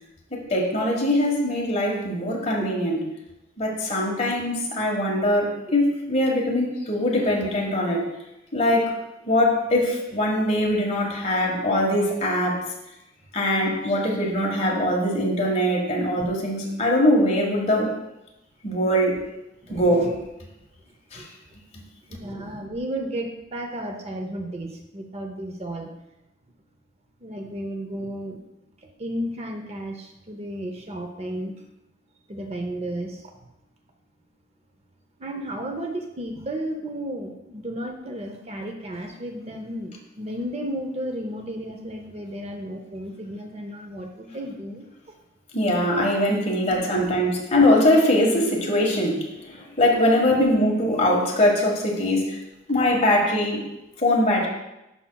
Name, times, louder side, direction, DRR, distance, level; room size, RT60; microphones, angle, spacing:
voice 1, 0.3-3.0 3.6-8.1 8.5-8.9 9.2-12.7 13.3-18.0 18.6-19.2 19.7-20.1 21.1-21.3 45.5-52.4 52.7-53.6 54.0-54.5, left 1 dB, 35° left, -1 dB, 1.5 m, -22 dB
voice 2, 19.6-20.1 21.1-21.3 22.1-25.9 27.2-28.4 28.8-31.5 32.3-33.3 35.2-44.8 46.9-47.0 50.2-50.5, right 1 dB, 30° right, 4 dB, 0.6 m, -33 dB
11.5 x 5.8 x 2.3 m, 0.92 s
head